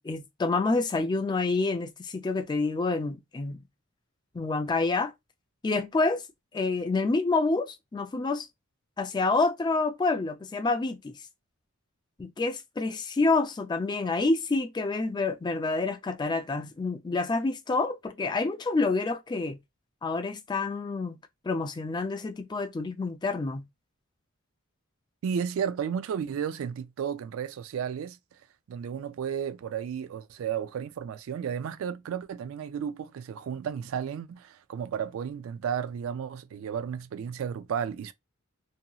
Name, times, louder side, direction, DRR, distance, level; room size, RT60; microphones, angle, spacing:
voice 1, 0.0-3.6 4.3-5.1 5.6-6.2 6.5-8.5 9.0-11.2 12.2-19.6 20.0-21.2 21.4-23.6, left 3 dB, 20° left, 0.3 m, -28 dB
voice 2, 25.2-28.2 28.7-38.1, right 7 dB, 75° right, 0.3 m, -33 dB
2.8 x 2.6 x 2.3 m
head